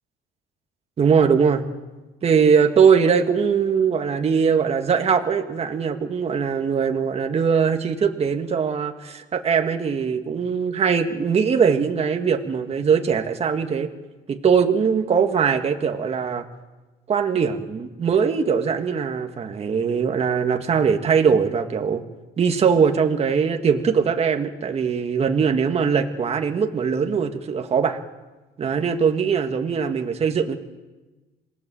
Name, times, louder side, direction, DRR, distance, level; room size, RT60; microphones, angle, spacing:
voice 1, 1.0-1.7 2.2-13.9 14.3-16.5 17.1-22.0 22.4-28.0 28.6-30.6, right 6 dB, 40° right, 5 dB, 1.8 m, -21 dB
27.0 x 19.0 x 7.7 m, 1.2 s
cardioid pair, 110°, 17 cm